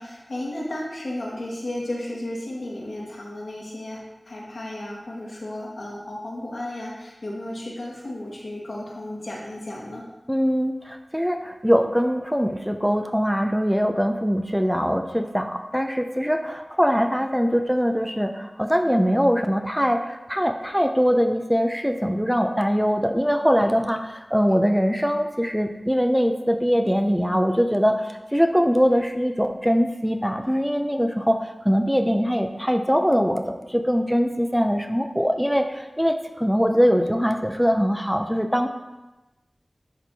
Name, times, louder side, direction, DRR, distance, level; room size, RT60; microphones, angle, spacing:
voice 1, 0.0-10.0, left 1 dB, 80° left, -4 dB, 1.6 m, -34 dB
voice 2, 10.3-38.7, equal, ahead, 5 dB, 0.5 m, -22 dB
10.5 x 4.4 x 2.8 m, 1.1 s
wide cardioid pair, 55°, 0 cm